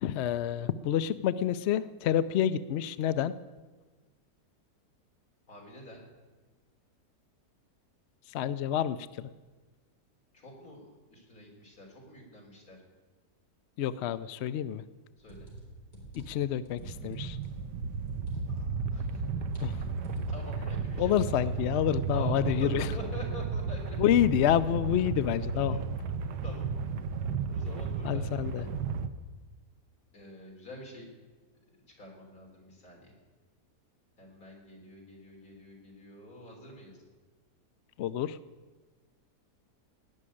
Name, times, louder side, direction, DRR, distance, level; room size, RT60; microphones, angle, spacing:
voice 1, 0.0-3.4 8.3-9.3 13.8-14.8 16.1-17.4 19.6-19.8 21.0-22.9 24.0-25.8 28.0-28.7 38.0-38.4, left 10 dB, 75° left, 14 dB, 0.6 m, -28 dB
voice 2, 5.5-6.0 10.3-12.8 15.2-15.5 18.5-19.3 20.3-21.5 22.1-24.0 25.5-25.8 26.4-26.7 27.5-28.7 30.1-31.1 32.0-33.1 34.2-37.0, left 1 dB, 60° left, -1 dB, 3.9 m, -46 dB
sound 1, 15.3-18.8 19.1-20.7, right 1 dB, 25° left, 4.1 m, -46 dB
sound 2, 16.8-29.1, right 5 dB, 80° right, 1.4 m, -34 dB
17.5 x 6.3 x 9.8 m, 1.3 s
omnidirectional pair, 1.7 m